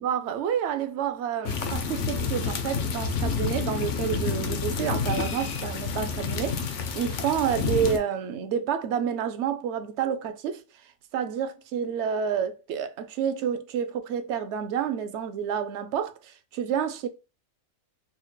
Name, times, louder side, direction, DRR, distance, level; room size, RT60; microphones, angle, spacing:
voice 1, 0.0-6.7 7.0-10.6 11.1-17.1, right 8 dB, 65° right, 0.8 m, -29 dB
sound 1, 1.5-8.0, left 5 dB, 65° left, 0.9 m, -29 dB
4.3 x 3.1 x 2.2 m
omnidirectional pair, 1.5 m